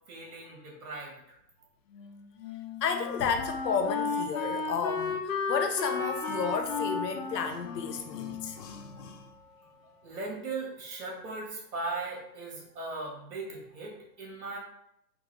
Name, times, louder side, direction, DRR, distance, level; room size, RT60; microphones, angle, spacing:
voice 1, 0.1-1.2 10.0-14.6, right 3 dB, 60° right, -1 dB, 1.5 m, -38 dB
Wind instrument woodwind instrument, 1.9-9.2, left 4 dB, 55° left, 0.6 m, -34 dB
voice 2, 2.8-9.3, left 6 dB, 85° left, 6 dB, 0.7 m, -32 dB
Percussion, 6.0-10.3 10.6-10.7, right 1 dB, 15° left, 0.7 m, -46 dB
3.8 x 2.4 x 3.2 m, 0.77 s
hypercardioid pair, 170°, 48 cm